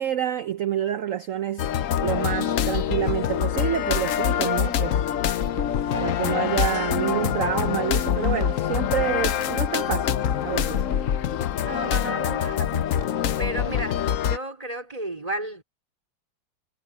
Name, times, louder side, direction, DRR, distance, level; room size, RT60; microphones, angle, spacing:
voice 1, 0.0-1.7 2.0-5.0 5.9-10.8, right 10 dB, 65° right, 0.7 m, -28 dB
sound 1, 1.6-14.4, left 9 dB, 75° left, 0.7 m, -25 dB
Water tap faucet / Drip, 2.9-13.1, right 1 dB, 30° right, 7.0 m, -47 dB
voice 2, 11.6-13.0 13.4-15.6, right 2 dB, 15° right, 4.7 m, -33 dB
omnidirectional pair, 2.2 m